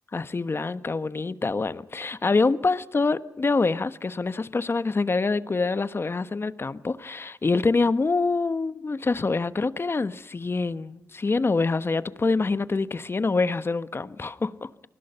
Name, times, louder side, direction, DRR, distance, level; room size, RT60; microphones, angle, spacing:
voice 1, 0.1-14.7, left 3 dB, 40° left, 1.2 m, -25 dB
29.0 x 20.0 x 5.7 m
cardioid pair, 50°, 6 cm